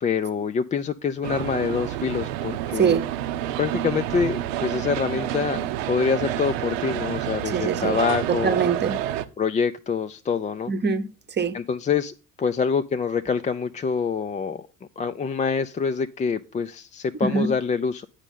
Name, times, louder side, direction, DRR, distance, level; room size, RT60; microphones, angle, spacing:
voice 1, 0.0-3.0 3.6-8.6 9.4-10.7 11.5-14.7 15.0-18.1, left 6 dB, 20° left, 0.4 m, -26 dB
sound 1, 1.2-9.3, right 12 dB, 75° right, 0.7 m, -29 dB
voice 2, 2.8-3.1 7.5-8.0 8.3-9.0 10.7-11.6 17.2-17.5, right 6 dB, 25° right, 0.9 m, -24 dB
9.0 x 5.1 x 5.4 m
hypercardioid pair, 60°, 40 cm